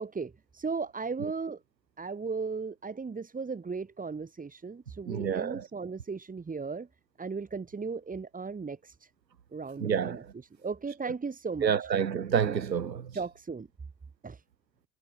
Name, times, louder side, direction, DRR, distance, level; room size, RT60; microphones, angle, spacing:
voice 1, 0.0-1.6 2.0-6.9 7.2-9.1 9.5-11.9 13.1-13.7 14.2-14.4, right 4 dB, 15° right, 4.5 m, -36 dB
voice 2, 5.1-5.6 9.8-10.2 11.6-13.1, right 7 dB, 80° right, 2.4 m, -28 dB
figure-of-eight pair, 80°, 49 cm